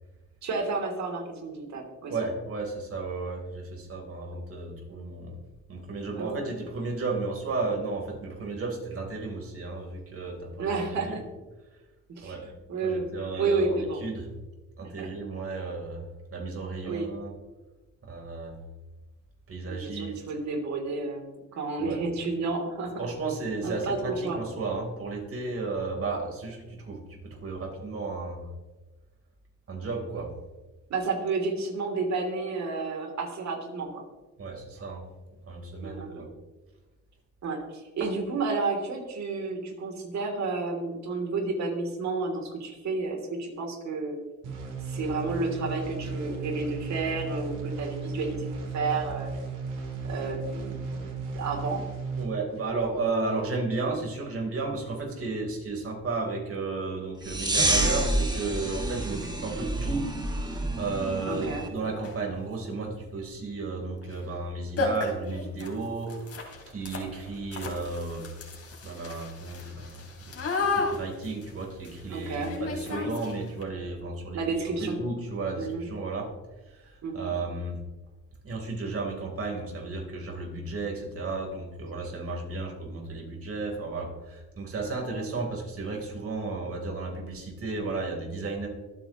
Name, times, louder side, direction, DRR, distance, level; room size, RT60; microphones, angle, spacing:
voice 1, 0.4-2.1 6.2-6.5 10.6-11.2 12.1-13.1 13.4-14.0 15.0-15.1 16.8-17.1 19.6-23.1 23.6-24.4 30.9-34.0 35.8-36.3 37.4-44.2 44.8-49.3 50.0-51.8 61.3-61.7 72.1-72.6 72.8-73.1 74.3-75.0 75.6-75.9 77.0-77.3 85.1-85.4, right 3 dB, 65° right, 2 dB, 3.1 m, -31 dB
voice 2, 2.1-5.4 5.7-11.2 12.2-12.5 12.8-14.3 14.8-16.0 16.3-17.3 18.0-18.6 19.5-20.2 21.8-22.0 23.0-28.5 29.7-30.3 34.4-35.1 35.4-36.3 52.2-66.1 66.7-68.3 68.8-70.3 70.6-74.4 74.8-76.3 76.7-77.8 78.4-88.7, right 3 dB, 50° right, 0 dB, 3.8 m, -33 dB
sound 1, 44.4-52.2, right 4 dB, 80° right, 3.6 m, -35 dB
sound 2, 57.2-61.7, right 1 dB, 15° right, 1.8 m, -28 dB
sound 3, 61.3-61.4 61.9-62.3 64.0-64.2 64.4-64.5 64.8-73.6, left 3 dB, 50° left, 3.2 m, -34 dB
24.0 x 8.7 x 3.1 m, 1.2 s
cardioid pair, 90°, 30 cm